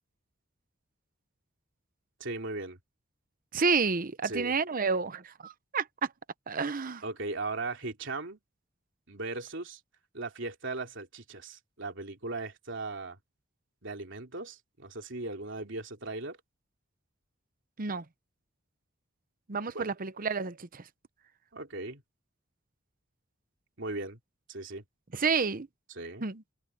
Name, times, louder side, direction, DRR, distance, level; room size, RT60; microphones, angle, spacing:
voice 1, 2.2-2.8 4.2-4.5 7.0-8.4 9.1-9.8 10.1-13.2 13.8-16.4 19.7-19.9 21.5-22.0 23.8-24.2 24.5-24.8 25.9-26.3, right 3 dB, 65° right, 3.4 m, -38 dB
voice 2, 3.5-6.1 6.5-7.0 17.8-18.0 19.5-20.8 25.1-25.7 26.2-26.4, right 5 dB, 45° right, 0.9 m, -30 dB
head